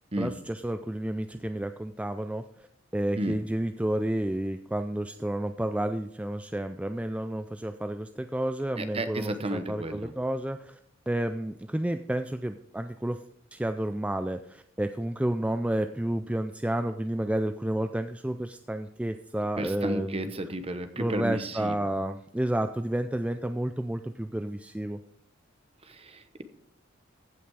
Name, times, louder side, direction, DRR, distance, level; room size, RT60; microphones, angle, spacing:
voice 1, 0.2-2.4 2.9-10.8 11.1-13.2 13.5-20.3 21.0-25.0, right 1 dB, 5° right, 8 dB, 0.3 m, -31 dB
voice 2, 8.8-10.1 19.6-21.8 25.8-26.4, right 1 dB, 30° right, 9 dB, 1.0 m, -33 dB
15.5 x 6.0 x 4.7 m, 0.70 s
head